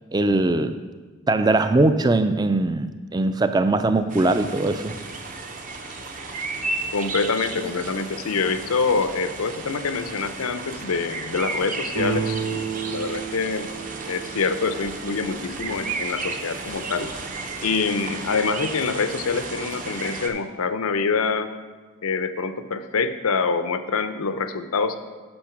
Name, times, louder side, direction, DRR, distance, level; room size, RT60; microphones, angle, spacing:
voice 1, 0.1-0.8 1.3-4.9, right 2 dB, 20° right, 10 dB, 0.3 m, -21 dB
sound 1, 4.1-20.3, right 3 dB, 35° right, 0.7 m, -33 dB
voice 2, 6.9-13.7 14.1-17.1 17.6-21.5 22.0-25.0, left 4 dB, 85° left, 10 dB, 0.6 m, -25 dB
sound 2, 11.9-15.5, right 6 dB, 75° right, 2.4 m, -31 dB
8.8 x 5.7 x 5.9 m, 1.4 s
head